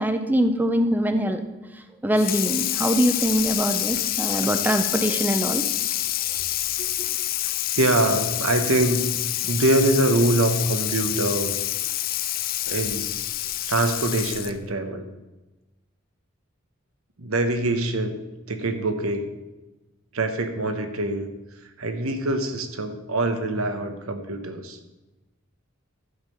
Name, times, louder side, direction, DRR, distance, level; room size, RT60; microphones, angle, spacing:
voice 1, 0.0-1.4 2.0-5.6, equal, 10° right, 7 dB, 0.5 m, -23 dB
Water tap faucet / Sink (filling or washing), 2.2-14.7, left 14 dB, 40° left, 0.4 m, -27 dB
voice 2, 6.8-9.0 9.4-11.5 12.7-13.1 13.7-15.1 17.2-18.2 18.5-19.3 20.1-21.3 21.8-24.8, right 1 dB, 85° right, 7 dB, 1.0 m, -24 dB
11.5 x 5.4 x 5.7 m, 1.1 s
head